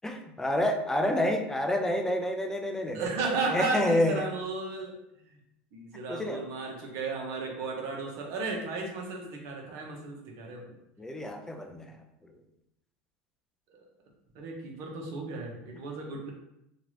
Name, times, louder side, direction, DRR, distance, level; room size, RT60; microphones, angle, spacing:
voice 1, 0.0-4.3 6.1-6.5 11.0-12.0, left 1 dB, 10° left, 5 dB, 0.4 m, -29 dB
voice 2, 2.9-5.0 5.3-5.4 5.7-10.7 13.7-13.8 14.3-16.3, right 3 dB, 55° right, 0 dB, 0.8 m, -34 dB
2.9 x 2.4 x 3.1 m, 0.84 s
supercardioid pair, 100°, 6 cm